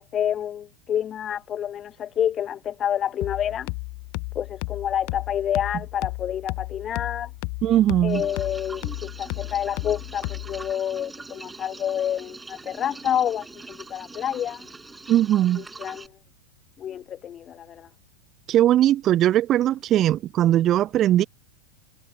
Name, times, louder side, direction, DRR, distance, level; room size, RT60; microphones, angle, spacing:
voice 1, 0.0-3.7 4.4-7.3 8.0-14.7 15.6-16.1 16.8-17.9, left 10 dB, 25° left, 1.6 m, -28 dB
sound 1, 3.2-10.7, left 38 dB, 45° left, 1.3 m, -34 dB
voice 2, 7.6-8.2 15.1-15.6 18.5-21.2, right 12 dB, 30° right, 0.4 m, -19 dB
sound 2, 8.1-16.1, right 3 dB, 10° right, 6.7 m, -43 dB
figure-of-eight pair, 90°, 0 cm